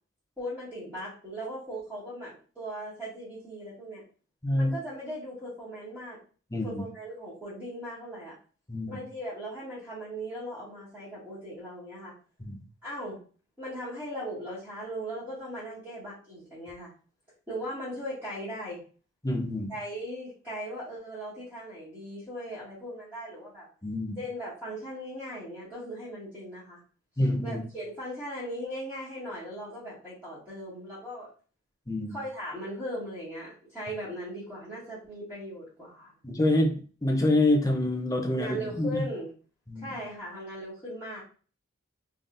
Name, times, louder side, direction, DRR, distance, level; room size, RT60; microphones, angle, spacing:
voice 1, 0.4-4.0 4.5-6.2 6.6-8.3 8.9-12.1 12.8-13.2 13.6-16.9 17.5-18.8 19.7-23.7 24.2-26.8 27.4-31.3 32.1-36.1 38.4-39.3 39.8-41.2, equal, 10° right, -13 dB, 2.0 m, -38 dB
voice 2, 4.4-4.7 6.5-6.8 8.7-9.0 12.4-12.6 19.2-19.7 23.8-24.2 27.2-27.6 31.9-32.1 36.2-39.0 39.7-40.0, left 1 dB, 15° left, 2 dB, 0.6 m, -27 dB
3.8 x 3.5 x 2.6 m, 0.39 s
head